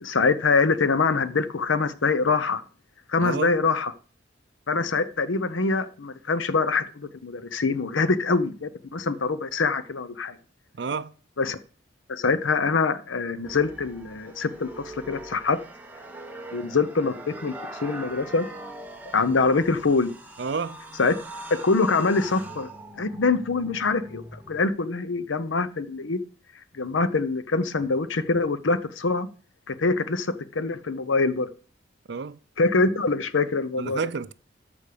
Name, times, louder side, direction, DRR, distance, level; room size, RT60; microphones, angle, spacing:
voice 1, 0.0-2.6 3.1-3.9 4.7-10.4 11.4-11.6 12.1-15.6 16.5-18.5 19.1-20.1 21.0-21.1 21.6-22.7 23.0-26.2 26.7-29.3 29.7-31.5 32.6-34.0, left 4 dB, 80° left, 0.7 m, -24 dB
voice 2, 3.2-3.6 10.7-11.1 20.4-20.8 32.1-32.4 33.8-34.3, right 5 dB, 60° right, 0.5 m, -30 dB
sound 1, 13.4-24.7, right 1 dB, 10° right, 1.0 m, -42 dB
13.5 x 5.2 x 5.1 m
head